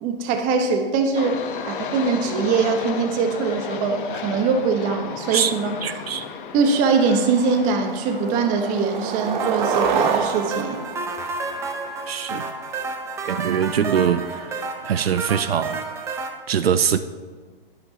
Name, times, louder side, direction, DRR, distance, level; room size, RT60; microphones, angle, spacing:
voice 1, 0.0-1.4 1.7-5.7 6.5-10.8, right 4 dB, 25° right, 1.2 m, -22 dB
sound 1, 1.2-16.1, left 6 dB, 60° left, 1.1 m, -36 dB
voice 2, 5.8-6.2 12.1-12.4 13.3-14.2 14.9-15.8 16.5-17.0, right 8 dB, 85° right, 0.6 m, -22 dB
Skateboard, 6.2-6.3 6.7-7.0 7.4-12.0, right 6 dB, 50° right, 1.0 m, -27 dB
sound 2, 9.4-16.3, right 3 dB, 10° right, 0.6 m, -31 dB
13.0 x 10.5 x 2.9 m
hypercardioid pair, 135°, 29 cm